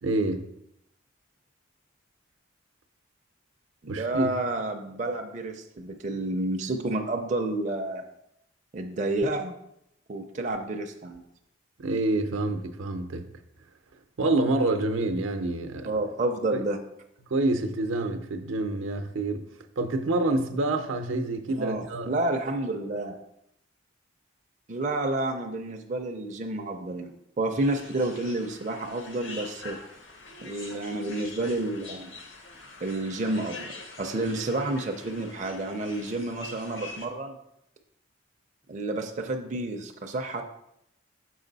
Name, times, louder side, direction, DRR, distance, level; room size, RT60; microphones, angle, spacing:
voice 1, 0.0-0.5 3.9-4.3 11.8-13.3 14.2-15.9 16.5-16.6 17.3-19.5 19.8-22.1, right 2 dB, 80° right, 0.6 m, -27 dB
voice 2, 3.8-8.0 8.7-9.6 10.1-11.2 15.8-16.8 21.6-23.2 24.7-29.8 30.4-32.1 32.8-33.7 34.0-37.4 38.7-40.4, right 2 dB, 40° right, 0.4 m, -30 dB
sound 1, 27.6-37.1, left 3 dB, 70° left, 1.0 m, -44 dB
6.3 x 4.6 x 4.0 m
head